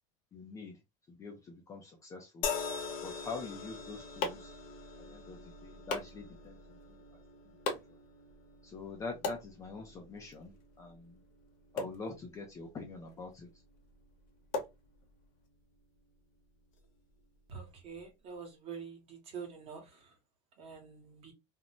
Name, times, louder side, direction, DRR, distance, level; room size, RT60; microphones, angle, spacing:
voice 1, 0.3-0.8 1.1-2.5 3.0-4.5 5.0-7.2 7.4-7.5 8.6-11.2 11.7-13.5, left 4 dB, 20° left, 0.4 m, -45 dB
sound 1, 2.4-15.8 16.7-16.9, left 6 dB, 85° left, 0.9 m, -45 dB
sound 2, 3.5-15.5, left 4 dB, 50° left, 0.8 m, -44 dB
voice 2, 17.5-19.0 19.3-19.8 20.6-21.3, right 6 dB, 35° right, 1.0 m, -45 dB
2.6 x 2.1 x 2.8 m
cardioid pair, 165°, 17 cm